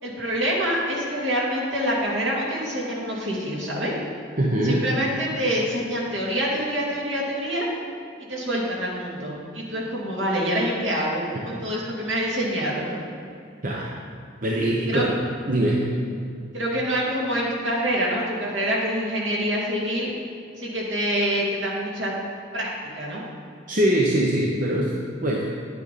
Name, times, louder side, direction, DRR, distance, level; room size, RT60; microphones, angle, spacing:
voice 1, 0.0-3.9 4.6-7.7 8.3-13.0 14.9-15.0 16.5-20.1 20.6-22.1 22.5-22.7 22.9-23.2, equal, 70° right, -4 dB, 2.5 m, -26 dB
voice 2, 4.4-4.8 11.3-11.4 13.6-13.9 14.4-15.1 15.5-15.9 23.7-24.9 25.2-25.5, right 1 dB, 45° right, -3 dB, 0.9 m, -22 dB
10.5 x 9.2 x 4.1 m, 2.4 s
head